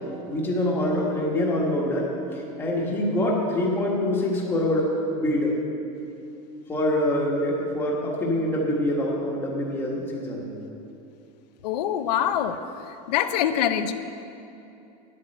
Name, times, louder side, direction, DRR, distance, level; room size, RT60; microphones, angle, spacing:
voice 1, 0.3-5.6 6.7-10.5, left 1 dB, 10° left, -2 dB, 1.3 m, -25 dB
voice 2, 11.6-12.6 13.1-13.9, left 10 dB, 90° left, 9 dB, 0.6 m, -24 dB
10.0 x 7.5 x 7.8 m, 2.7 s
supercardioid pair, 180°, 20 cm